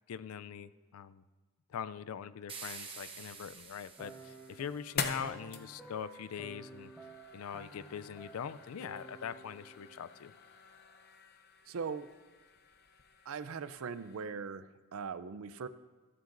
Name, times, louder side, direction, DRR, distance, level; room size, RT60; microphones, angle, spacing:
voice 1, 0.1-1.2 1.7-6.9 7.3-10.3, left 7 dB, 90° left, 15 dB, 0.4 m, -42 dB
sound 1, 2.5-4.9, right 5 dB, 25° right, 1.0 m, -48 dB
sound 2, 3.3-14.2, left 6 dB, 50° left, 0.7 m, -46 dB
sound 3, 4.0-10.3, right 2 dB, ahead, 0.9 m, -53 dB
voice 2, 11.7-12.1 13.3-15.7, right 5 dB, 75° right, 13 dB, 0.5 m, -40 dB
14.5 x 12.5 x 2.6 m, 1.3 s
head